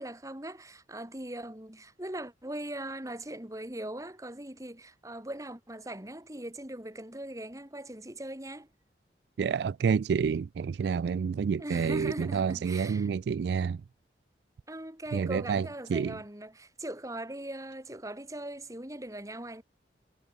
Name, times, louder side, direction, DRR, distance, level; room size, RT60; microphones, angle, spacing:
voice 1, 0.0-8.7 11.6-13.1 14.7-19.6, right 1 dB, 20° right, 2.7 m, -40 dB
voice 2, 9.4-13.8 15.1-15.6 15.9-16.1, right 6 dB, 70° right, 0.3 m, -28 dB
head